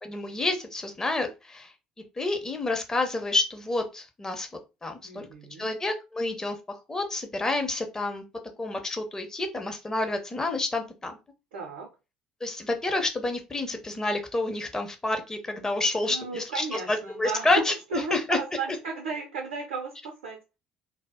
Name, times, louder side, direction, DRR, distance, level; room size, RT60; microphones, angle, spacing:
voice 1, 0.0-1.7 2.2-4.5 4.8-5.3 5.6-6.6 6.9-8.2 8.6-11.2 12.4-17.7 18.1-18.4, left 2 dB, 15° left, 0.7 m, -29 dB
voice 2, 5.0-5.7 11.5-11.9 16.0-20.4, right 4 dB, 70° right, 0.6 m, -34 dB
2.2 x 2.1 x 3.4 m
figure-of-eight pair, 55°, 3 cm